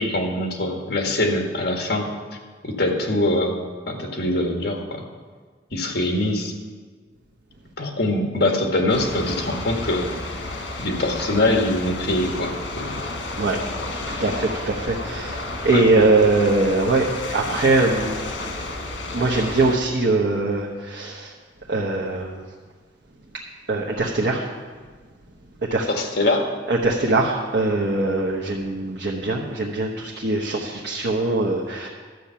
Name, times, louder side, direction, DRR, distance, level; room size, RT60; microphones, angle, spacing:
voice 1, 0.0-2.1 2.6-3.6 3.9-5.0 5.7-6.5 7.8-10.1 10.8-12.9 15.7-15.8 25.9-26.5, left 1 dB, 55° left, 2 dB, 1.6 m, -23 dB
sound 1, 8.9-19.8, left 2 dB, 80° left, 1.6 m, -32 dB
voice 2, 14.2-18.3 19.1-21.3 21.7-22.4 23.7-24.4 25.7-25.9 26.7-31.9, right 2 dB, 70° right, -3 dB, 1.0 m, -22 dB
12.0 x 7.9 x 5.7 m, 1.5 s
head